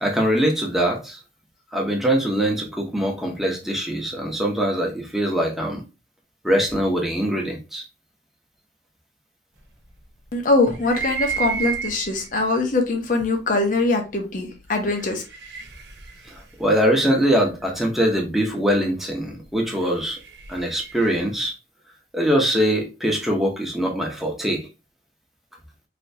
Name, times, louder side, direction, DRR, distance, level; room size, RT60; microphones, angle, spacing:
voice 1, 0.0-1.2 1.7-5.8 6.4-7.8 16.3-20.2 20.5-21.5 22.1-24.7, equal, ahead, 0.8 m, -22 dB
voice 2, 10.3-15.2, left 2 dB, 50° left, 0.8 m, -22 dB
sound 1, 10.7-12.4 13.2-13.3 14.6-17.5 19.6-21.3, right 6 dB, 80° right, 0.8 m, -32 dB
3.3 x 2.8 x 2.7 m
head